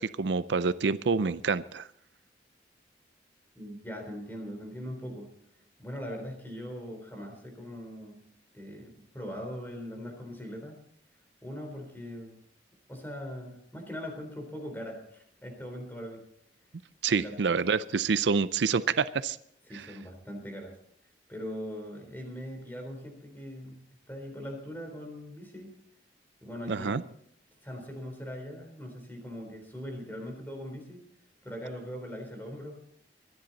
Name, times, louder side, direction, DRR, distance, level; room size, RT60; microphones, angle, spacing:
voice 1, 0.0-1.9 17.0-19.4 19.7-19.9 26.7-27.0, right 5 dB, 80° right, 15 dB, 0.5 m, -27 dB
voice 2, 3.6-5.3 5.8-8.2 8.5-10.8 11.4-12.4 12.9-16.2 17.2-17.4 19.7-20.7 21.3-23.8 24.1-25.7 26.4-27.0 27.6-31.0 31.4-32.8, equal, 10° left, 3 dB, 3.7 m, -41 dB
24.0 x 10.5 x 4.1 m, 0.67 s
head